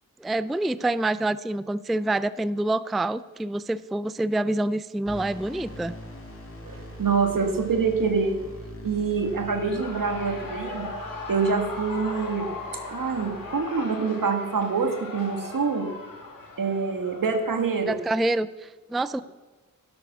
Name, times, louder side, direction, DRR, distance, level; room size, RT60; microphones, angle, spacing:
voice 1, 0.2-5.9 17.9-19.2, right 2 dB, ahead, 16 dB, 0.3 m, -27 dB
sound 1, 5.1-13.6, equal, 40° left, 3.7 m, -43 dB
voice 2, 6.6-8.4 8.8-10.9 11.3-12.5 12.9-15.9 16.6-18.0, right 5 dB, 75° right, 6 dB, 1.8 m, -26 dB
Shout / Cheering, 9.1-18.0, left 3 dB, 85° left, 3.6 m, -39 dB
12.0 x 11.5 x 6.1 m, 1.3 s
wide cardioid pair, 95°, 33 cm